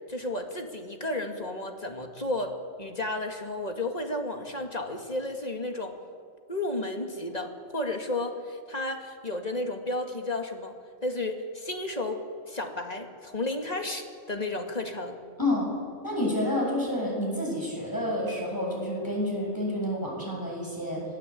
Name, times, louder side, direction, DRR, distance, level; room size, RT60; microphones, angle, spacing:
voice 1, 0.1-6.0 6.5-10.7 11.0-15.2, left 2 dB, 35° left, 4 dB, 2.2 m, -32 dB
voice 2, 15.4-15.7 16.0-21.0, left 1 dB, 15° left, -2 dB, 7.3 m, -29 dB
25.5 x 17.0 x 8.5 m, 2.2 s
omnidirectional pair, 1.3 m